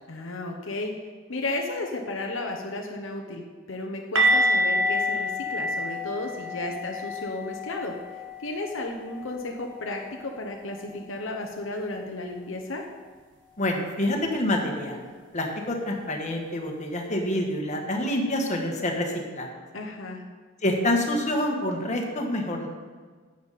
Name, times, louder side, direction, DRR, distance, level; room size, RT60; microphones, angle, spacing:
voice 1, 0.1-0.9 1.3-3.4 3.7-7.9 8.4-12.8 19.7-20.2, left 2 dB, 75° left, 2 dB, 0.9 m, -33 dB
sound 1, 4.2-9.9 10.2-10.4 10.8-10.9 14.2-14.3, equal, 65° right, 1.5 m, -28 dB
voice 2, 13.6-15.0 15.3-19.5 20.6-22.7, left 1 dB, 35° left, 1 dB, 1.4 m, -27 dB
10.5 x 8.0 x 4.1 m, 1.5 s
head